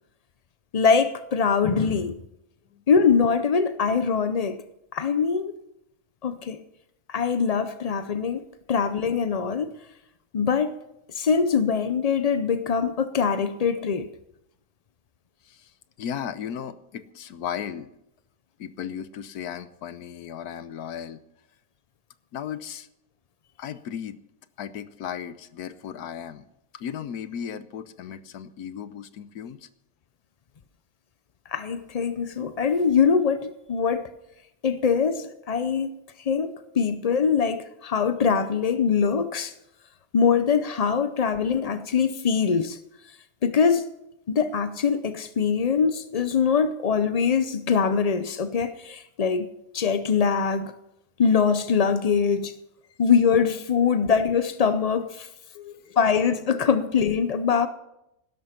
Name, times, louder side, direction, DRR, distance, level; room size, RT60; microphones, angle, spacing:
voice 1, 0.7-2.2 2.9-4.6 4.9-5.5 6.2-6.6 7.1-8.4 8.7-9.7 10.3-10.8 11.1-14.1 31.5-34.1 34.6-35.9 36.2-39.5 40.1-42.8 43.4-43.8 44.3-50.7 51.2-52.5 53.0-55.3 56.0-57.7, left 6 dB, 60° left, 0.4 m, -23 dB
voice 2, 16.0-17.9 18.6-21.2 22.3-22.9 23.6-24.2 24.6-26.4 26.7-29.7 55.5-56.2 56.6-56.7, left 8 dB, 80° left, 1.3 m, -36 dB
16.5 x 12.5 x 5.8 m
omnidirectional pair, 1.6 m